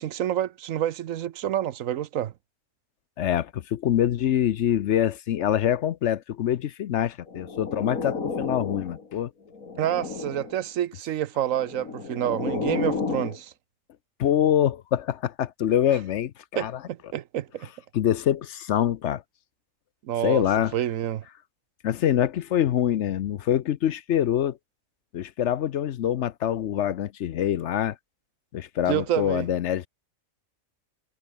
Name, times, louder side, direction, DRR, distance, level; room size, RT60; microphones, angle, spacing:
voice 1, 0.0-2.3 9.8-13.5 16.6-17.7 20.0-20.4 20.7-21.2 28.9-29.5, right 11 dB, 75° right, 1.1 m, -28 dB
voice 2, 3.2-9.3 14.2-16.8 17.9-19.2 20.2-20.7 21.8-24.6 25.1-28.0 28.5-29.9, left 10 dB, 65° left, 0.9 m, -25 dB
sound 1, 7.3-9.1 9.5-10.6 11.5-13.4, left 4 dB, 90° left, 3.0 m, -32 dB
omnidirectional pair, 1.4 m